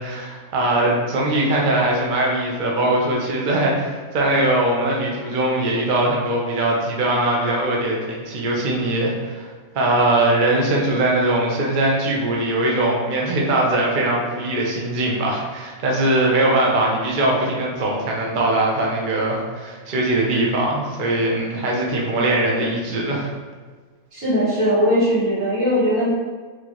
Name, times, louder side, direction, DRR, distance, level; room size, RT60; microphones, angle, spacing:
voice 1, 0.0-9.5 9.7-23.3, right 1 dB, 45° right, -2 dB, 0.7 m, -21 dB
voice 2, 24.1-26.1, equal, 80° right, -9 dB, 2.1 m, -19 dB
4.3 x 3.1 x 2.9 m, 1.5 s
omnidirectional pair, 1.5 m